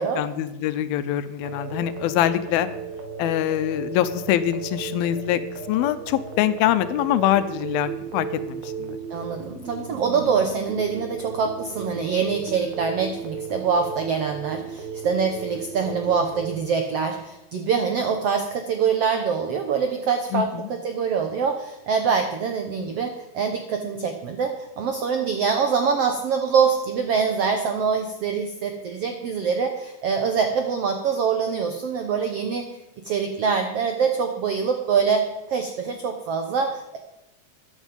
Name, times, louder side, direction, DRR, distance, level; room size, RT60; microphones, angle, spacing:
voice 1, 0.2-2.7 3.2-5.4 5.7-9.0 20.3-20.7, left 12 dB, 90° left, 13 dB, 2.6 m, -24 dB
sound 1, 1.4-16.6, right 5 dB, 55° right, 2.6 m, -35 dB
voice 2, 9.1-32.7 33.0-37.0, right 6 dB, 80° right, 5 dB, 1.4 m, -24 dB
13.5 x 10.5 x 5.3 m, 0.90 s
omnidirectional pair, 4.2 m